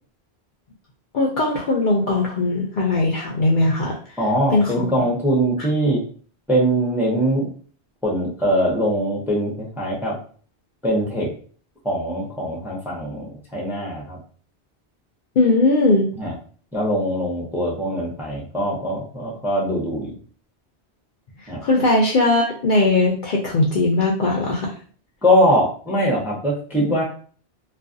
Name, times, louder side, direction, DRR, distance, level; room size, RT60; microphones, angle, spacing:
voice 1, 1.1-4.2 4.5-4.9 15.4-16.1 21.4-24.7, left 2 dB, 60° left, -2 dB, 0.6 m, -19 dB
voice 2, 4.2-6.0 6.5-7.5 8.0-10.2 10.8-11.3 11.8-14.2 16.2-16.3 16.7-20.1 21.5-21.6 25.2-27.0, equal, 5° right, -2 dB, 0.5 m, -22 dB
2.4 x 2.3 x 2.5 m, 0.43 s
omnidirectional pair, 1.1 m